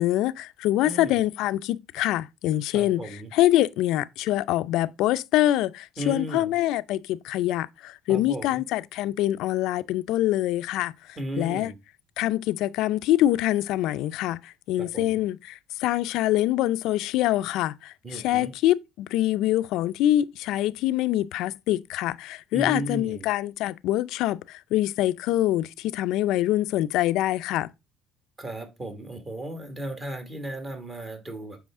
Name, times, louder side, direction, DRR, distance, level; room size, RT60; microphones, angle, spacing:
voice 1, 0.0-3.0 3.3-11.7 12.2-27.7, left 14 dB, 75° left, 0.4 m, -25 dB
voice 2, 0.8-1.2 2.7-3.3 6.0-6.5 8.1-8.6 11.2-11.8 14.8-15.2 18.0-18.5 22.5-23.3 28.4-31.6, right 1 dB, 25° right, 1.9 m, -35 dB
7.8 x 5.0 x 3.6 m
cardioid pair, 125°, 0 cm